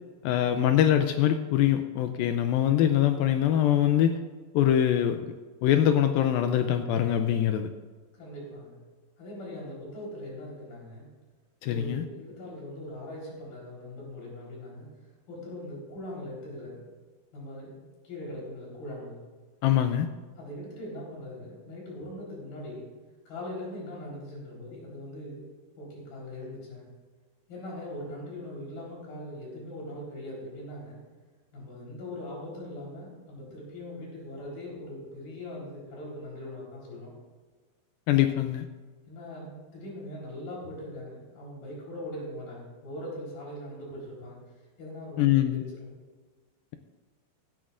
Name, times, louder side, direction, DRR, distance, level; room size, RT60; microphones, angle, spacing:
voice 1, 0.2-4.2 4.5-5.3 5.6-7.7 11.6-12.0 19.6-20.1 38.1-38.7 45.2-45.6, left 11 dB, 80° left, 8 dB, 2.2 m, -23 dB
voice 2, 8.1-8.8 9.2-11.1 11.7-14.9 15.3-16.8 17.3-17.8 18.0-19.2 20.4-22.8 23.3-25.5 25.8-26.9 27.5-31.0 31.5-37.1 39.1-44.4 44.8-45.9, left 1 dB, 65° left, -4 dB, 5.8 m, -41 dB
16.5 x 12.5 x 2.5 m, 1.4 s
omnidirectional pair, 4.5 m